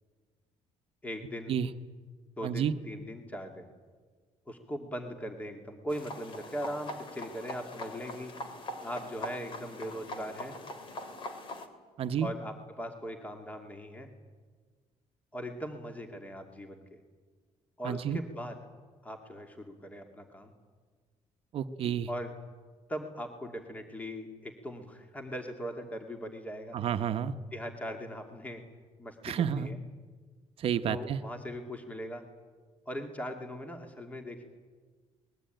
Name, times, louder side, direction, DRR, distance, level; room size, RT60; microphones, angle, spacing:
voice 1, 1.0-1.5 2.4-3.7 4.5-8.3 8.8-10.5 12.2-14.1 15.3-17.0 17.8-18.6 19.0-20.5 22.1-22.3 22.9-26.8 27.5-28.6 29.0-29.8 30.9-32.2 32.9-34.4, equal, 15° left, 4 dB, 2.5 m, -40 dB
voice 2, 2.4-2.7 12.0-12.3 17.8-18.2 21.5-22.1 26.7-27.3 29.2-29.7 30.6-31.2, right 8 dB, 60° right, 9 dB, 1.1 m, -30 dB
sound 1, 5.9-11.7, left 1 dB, 50° left, 3.0 m, -42 dB
24.5 x 21.0 x 9.2 m, 1.5 s
cardioid pair, 135°, 11 cm